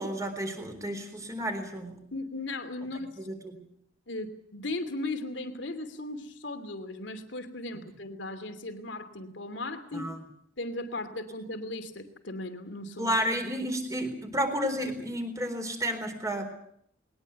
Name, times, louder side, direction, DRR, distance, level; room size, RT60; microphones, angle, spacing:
voice 1, 0.0-2.0 3.2-3.6 9.9-10.2 13.0-16.5, equal, 15° right, 6 dB, 3.9 m, -31 dB
voice 2, 2.1-3.1 4.1-10.1 10.6-13.1, left 2 dB, 75° left, 7 dB, 2.8 m, -37 dB
21.0 x 19.5 x 8.2 m, 0.69 s
head